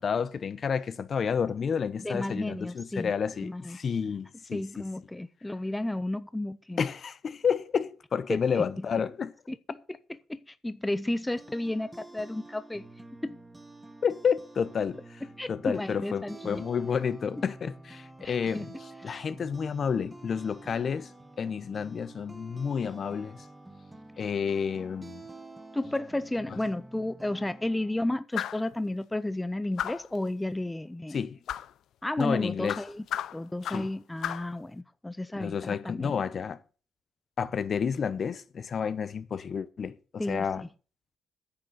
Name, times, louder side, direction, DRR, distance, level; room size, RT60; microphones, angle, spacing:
voice 1, 0.0-4.8 6.8-9.3 14.0-15.0 15.5-18.7 19.0-21.1 21.4-23.4 24.2-25.2 26.5-26.6 31.1-31.4 32.2-32.8 33.7-33.9 35.3-36.6 37.4-40.6, left 6 dB, 50° left, 0.8 m, -30 dB
voice 2, 2.0-3.1 3.4-3.8 4.5-6.9 8.3-8.6 9.5-9.8 10.1-12.9 13.2-13.4 15.4-16.6 17.4-17.5 18.2-18.7 19.0-19.2 24.2-24.3 25.7-31.2 32.0-33.1 33.3-36.2 40.2-40.7, left 1 dB, 10° left, 0.6 m, -33 dB
sound 1, 11.1-28.0, right 2 dB, 15° right, 1.6 m, -49 dB
sound 2, 28.3-28.7 29.8-30.2 31.5-31.7 32.7-33.9 34.2-34.5, left 11 dB, 75° left, 0.5 m, -34 dB
9.8 x 6.6 x 7.8 m
cardioid pair, 90°, 0 cm